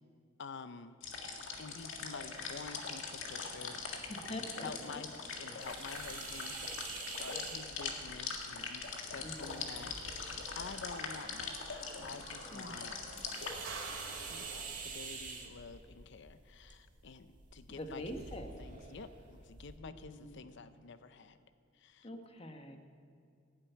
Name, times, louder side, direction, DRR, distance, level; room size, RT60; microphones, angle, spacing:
voice 1, 0.4-1.0 1.6-12.9 13.9-18.0 18.6-21.4 21.7-22.2, left 4 dB, 65° left, 12 dB, 0.6 m, -49 dB
sound 1, 1.0-13.5, left 4 dB, 85° left, 1.8 m, -42 dB
sound 2, 2.3-14.6, right 2 dB, 80° right, 2.6 m, -53 dB
voice 2, 4.1-5.0 9.2-9.9 12.5-12.7 13.1-13.2 17.7-18.5 19.8-20.4 22.0-22.8, left 1 dB, 30° left, 5 dB, 1.2 m, -45 dB
sound 3, 5.6-19.8, right 4 dB, 40° right, 1.9 m, -49 dB
17.0 x 7.5 x 9.4 m, 2.3 s
head